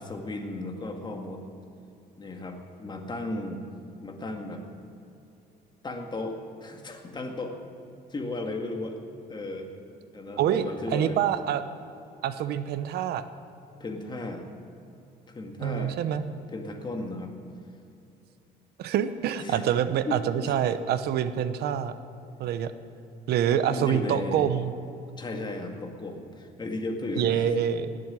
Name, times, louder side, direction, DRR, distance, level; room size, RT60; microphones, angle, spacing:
voice 1, 0.0-1.4 2.2-3.6 4.0-4.6 5.8-7.5 8.1-9.0 9.3-9.7 10.1-11.2 13.8-14.5 15.3-16.0 16.5-17.3 19.4-19.6 20.1-20.5 23.6-24.5 25.2-27.6, left 2 dB, 25° left, 4 dB, 2.0 m, -35 dB
voice 2, 10.9-11.6 12.2-13.2 15.6-16.2 18.8-21.9 22.4-22.7 23.3-24.7 27.2-27.9, right 9 dB, 70° right, 12 dB, 0.9 m, -26 dB
18.5 x 7.7 x 9.7 m, 2.7 s
cardioid pair, 110°, 17 cm